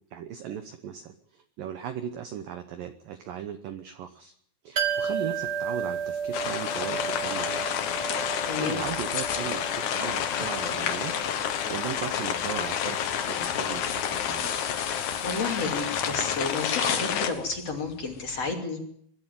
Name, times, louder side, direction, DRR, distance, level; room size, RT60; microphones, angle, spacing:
voice 1, 0.1-4.3 4.6-7.9 8.6-11.1 11.5-14.6, right 9 dB, 75° right, 9 dB, 2.1 m, -37 dB
sound 1, 4.8-16.4 16.6-16.7, right 7 dB, 45° right, 1.2 m, -35 dB
sound 2, 6.3-17.3, left 9 dB, 75° left, 1.7 m, -30 dB
sound 3, 7.8-18.5, left 7 dB, 55° left, 2.9 m, -39 dB
voice 2, 8.4-8.8 15.2-18.8, left 4 dB, 40° left, 2 dB, 3.2 m, -31 dB
23.5 x 12.5 x 9.2 m, 0.68 s
omnidirectional pair, 5.4 m